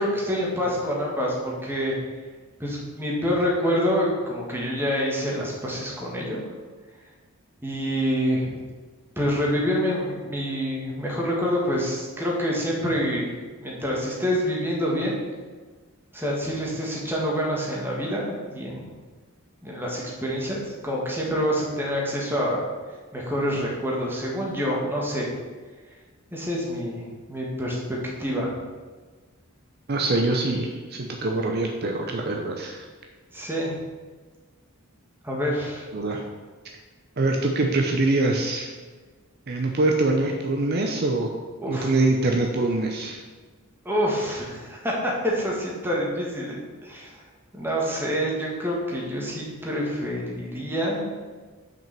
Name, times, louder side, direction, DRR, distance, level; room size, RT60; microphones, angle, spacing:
voice 1, 0.0-2.0 2.6-6.4 7.6-8.6 9.1-13.3 13.6-15.2 16.1-18.8 19.6-22.6 23.1-25.3 26.3-28.6 33.3-33.7 35.2-35.9 41.6-41.9 43.8-47.2 47.5-51.1, equal, 10° right, -3 dB, 1.7 m, -27 dB
voice 2, 29.9-32.8 35.9-36.2 37.2-38.7 39.5-41.3 41.7-43.2, right 2 dB, 45° right, 2 dB, 0.7 m, -24 dB
6.2 x 5.2 x 6.8 m, 1.4 s
head